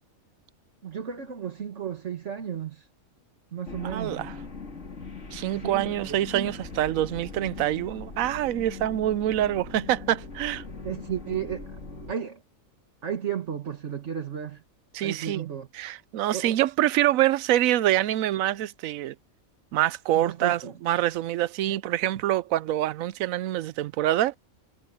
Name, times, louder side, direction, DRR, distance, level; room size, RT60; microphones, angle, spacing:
voice 1, 0.8-2.9 3.5-4.3 5.6-6.5 10.8-11.7 12.1-12.4 13.0-14.6 15.0-15.7 16.3-16.6 20.1-20.7 21.7-21.8, right 8 dB, 60° right, 1.8 m, -33 dB
sound 1, 3.7-12.1, left 4 dB, 60° left, 3.3 m, -41 dB
voice 2, 3.8-4.3 5.3-10.6 14.9-15.5 15.7-19.1 19.7-24.4, right 13 dB, 85° right, 1.0 m, -26 dB
omnidirectional pair, 1.4 m